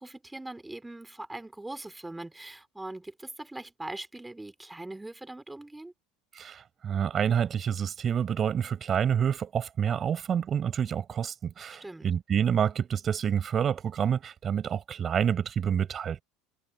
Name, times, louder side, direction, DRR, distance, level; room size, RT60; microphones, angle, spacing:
voice 1, 0.0-5.9 11.8-12.1, right 2 dB, 10° right, 3.4 m, -41 dB
voice 2, 6.3-16.2, right 8 dB, 35° right, 5.3 m, -28 dB
supercardioid pair, 110°, 0 cm